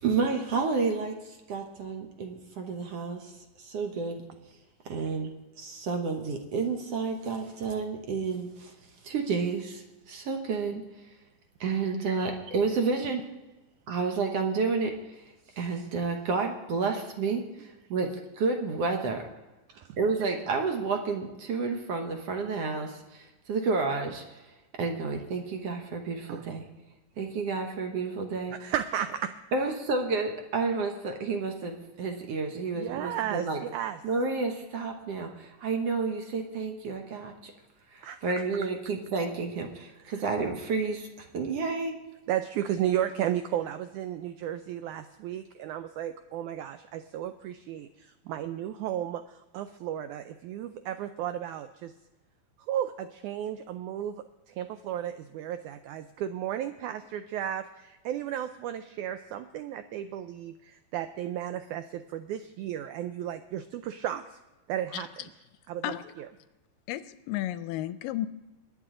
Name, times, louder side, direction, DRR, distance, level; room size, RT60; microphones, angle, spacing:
voice 1, 0.0-3.3 3.6-4.2 4.8-5.3 5.6-8.7 9.0-10.8 11.6-13.2 13.9-14.9 15.6-18.1 18.4-19.2 20.0-24.2 24.8-26.7 27.2-28.6 29.5-33.6 34.0-37.5 37.9-41.9, right 4 dB, 65° right, 4 dB, 1.6 m, -30 dB
voice 2, 28.6-29.3 32.8-34.0 38.0-38.3 40.0-40.2 42.3-51.9 52.6-64.4 64.7-65.3 65.7-66.3, right 11 dB, 90° right, 10 dB, 1.7 m, -34 dB
voice 3, 66.9-68.3, left 14 dB, 80° left, 13 dB, 2.1 m, -33 dB
22.0 x 9.8 x 3.8 m, 1.1 s
omnidirectional pair, 4.1 m